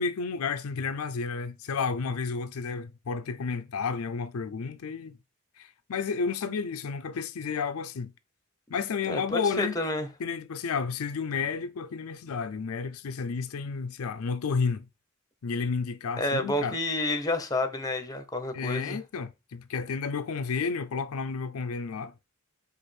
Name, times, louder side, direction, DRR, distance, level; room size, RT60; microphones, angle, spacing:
voice 1, 0.0-5.2 5.6-8.1 8.7-9.8 10.2-14.8 15.4-16.8 18.5-22.1, left 5 dB, 80° left, 0.5 m, -31 dB
voice 2, 9.1-10.1 16.2-19.0, left 1 dB, 15° left, 0.7 m, -29 dB
4.9 x 2.5 x 4.3 m
head